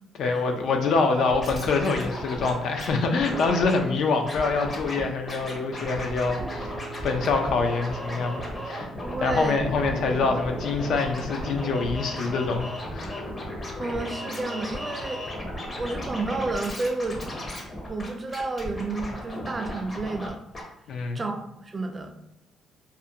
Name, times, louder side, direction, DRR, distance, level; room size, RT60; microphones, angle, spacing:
voice 1, 0.2-6.7 7.0-8.9 9.2-13.3 20.9-21.2, left 4 dB, 70° left, 4 dB, 0.3 m, -25 dB
Scratching (performance technique), 1.2-2.9 3.2-3.8 4.2-5.0 5.3-20.3 20.5-20.6, left 1 dB, 30° left, 0.6 m, -35 dB
Piano, 2.4-15.5, right 1 dB, 75° right, 0.6 m, -43 dB
voice 2, 9.0-9.6 13.8-15.2 15.8-17.2 17.9-20.4 21.1-22.1, right 2 dB, 25° right, 4 dB, 0.3 m, -31 dB
2.4 x 2.1 x 2.6 m, 0.80 s
cardioid pair, 115°, 0 cm